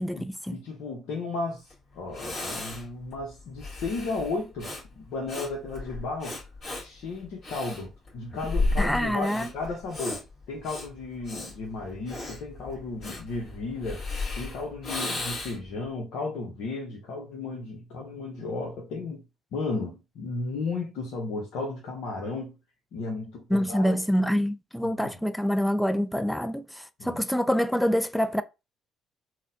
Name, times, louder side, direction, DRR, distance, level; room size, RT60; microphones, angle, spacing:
voice 1, 0.0-0.6 8.8-9.5 23.5-28.4, equal, 5° left, 0.3 m, -26 dB
voice 2, 0.5-6.4 6.8-14.1 14.3-19.2 19.5-22.6 22.9-23.9 24.8-25.0 27.0-27.2, left 3 dB, 70° left, 0.8 m, -34 dB
Breathing, 1.7-1.8 2.1-15.8, left 2 dB, 45° left, 1.9 m, -34 dB
3.9 x 2.2 x 2.6 m
hypercardioid pair, 55°, 0 cm